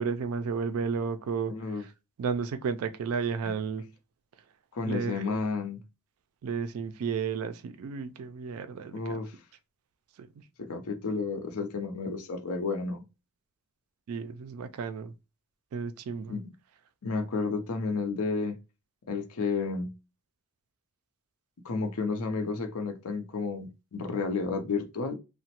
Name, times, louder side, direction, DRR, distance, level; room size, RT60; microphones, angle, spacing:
voice 1, 0.0-1.9 2.2-3.9 4.9-5.4 6.4-9.2 10.2-10.3 14.1-15.1 15.7-16.4, right 5 dB, 70° right, 0.3 m, -33 dB
voice 2, 1.5-1.8 4.7-5.8 8.9-9.4 10.6-13.0 16.3-16.5 17.0-18.6 19.1-19.9 21.6-25.2, left 4 dB, 75° left, 0.6 m, -31 dB
2.9 x 2.1 x 2.9 m
head